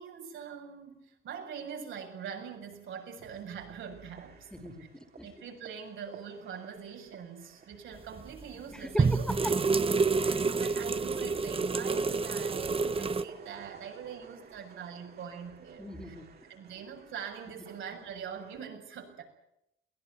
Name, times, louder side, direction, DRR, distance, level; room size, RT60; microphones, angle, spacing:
voice 1, 0.0-4.5 5.2-9.3 10.2-16.1 16.5-19.2, right 7 dB, 75° right, 2 dB, 7.2 m, -43 dB
sound 1, 1.9-18.6, right 6 dB, 55° right, 3.9 m, -54 dB
voice 2, 4.5-5.3 8.7-9.6 10.5-10.7 15.8-16.3, equal, 5° left, 7 dB, 3.3 m, -39 dB
sound 2, 8.2-8.4 9.0-13.2, right 4 dB, 30° right, 1.1 m, -28 dB
22.5 x 18.0 x 9.6 m, 0.84 s
cardioid pair, 90°, 20 cm